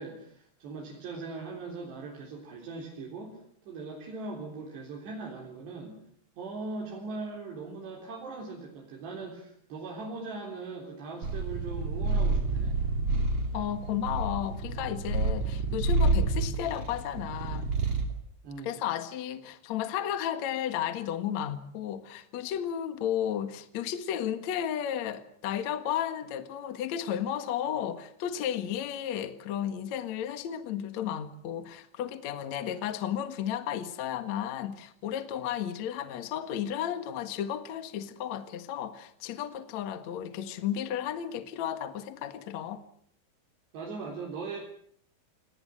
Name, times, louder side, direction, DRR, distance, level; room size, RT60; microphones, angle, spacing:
voice 1, 0.0-6.0 6.4-12.8 18.4-18.8 43.7-44.6, right 3 dB, 60° right, 5.8 m, -40 dB
Purr, 11.2-18.2, right 3 dB, 35° right, 3.2 m, -29 dB
voice 2, 13.5-17.7 18.6-42.8, left 10 dB, 60° left, 1.9 m, -33 dB
29.0 x 19.0 x 7.8 m
omnidirectional pair, 5.5 m